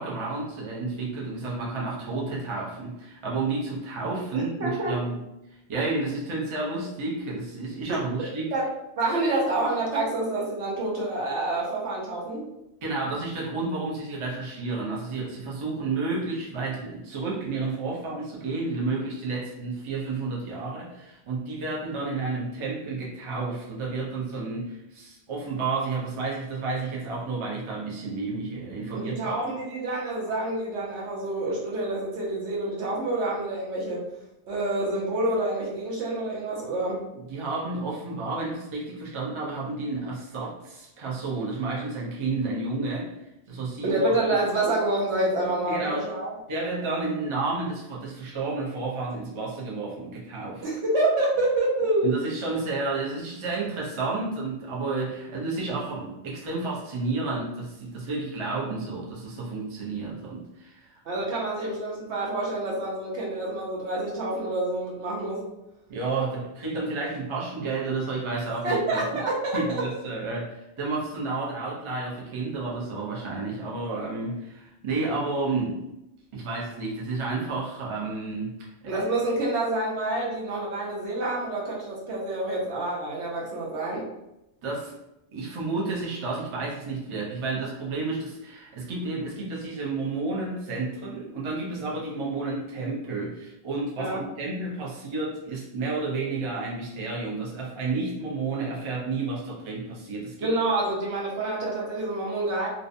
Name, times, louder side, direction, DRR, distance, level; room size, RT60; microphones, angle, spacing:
voice 1, 0.0-5.2 5.5-8.5 12.8-29.4 37.1-43.2 43.5-44.0 45.6-46.1 46.5-50.7 52.0-61.0 65.9-69.0 69.5-75.8 76.3-78.5 78.8-79.0 84.6-85.0 85.3-100.5, right 3 dB, 35° right, -4 dB, 0.5 m, -31 dB
voice 2, 4.3-4.9 7.9-8.0 8.5-8.7 9.0-12.5 28.9-34.0 34.5-37.1 43.8-46.3 50.6-52.1 61.1-65.4 68.6-69.6 78.9-84.1 94.0-94.2 100.4-102.7, right 2 dB, 75° right, -4 dB, 1.0 m, -27 dB
2.6 x 2.1 x 2.5 m, 0.91 s
omnidirectional pair, 1.2 m